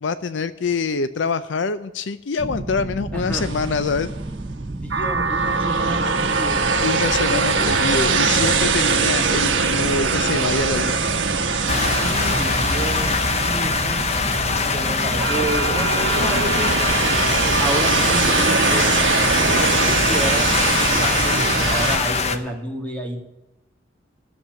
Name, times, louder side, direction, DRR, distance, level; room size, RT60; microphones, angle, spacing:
voice 1, 0.0-4.1 6.8-10.9, left 4 dB, 70° left, 13 dB, 0.5 m, -25 dB
sound 1, 2.4-22.0, right 2 dB, 25° right, 0.5 m, -32 dB
voice 2, 3.1-3.5 4.7-6.7 11.7-14.0 14.3-16.8 17.6-18.9 19.4-23.2, right 1 dB, 10° left, 2 dB, 2.1 m, -30 dB
sound 2, 3.3-4.1 4.9-14.5 15.2-22.0, right 4 dB, 70° right, 1.3 m, -22 dB
sound 3, 11.7-22.4, left 4 dB, 35° left, 0.9 m, -22 dB
13.0 x 7.3 x 9.2 m, 0.92 s
head